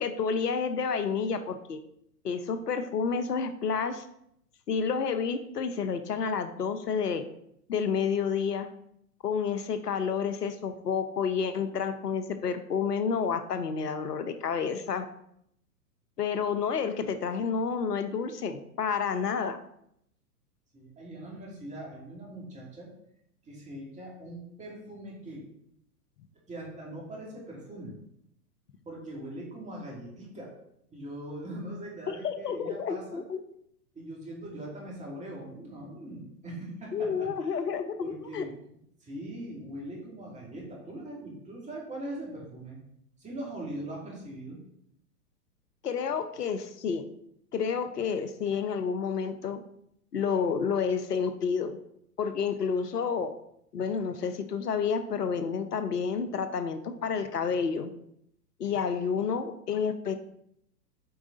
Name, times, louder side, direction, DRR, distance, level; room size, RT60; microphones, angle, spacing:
voice 1, 0.0-1.8 2.2-4.1 4.7-7.2 7.7-8.7 9.2-15.1 16.2-19.6 32.1-33.4 36.9-38.4 45.8-47.1 47.5-49.6 50.1-51.8 52.2-53.3 53.7-57.9 58.6-60.2, left 6 dB, 75° left, 9 dB, 0.8 m, -30 dB
voice 2, 20.7-22.9 23.4-25.4 26.5-28.0 28.9-30.5 30.9-33.2 33.9-37.6 38.0-38.6 39.0-42.8 43.2-44.6, right 1 dB, 15° right, -3 dB, 2.5 m, -41 dB
7.9 x 4.9 x 3.9 m, 0.75 s
figure-of-eight pair, 110°, 47 cm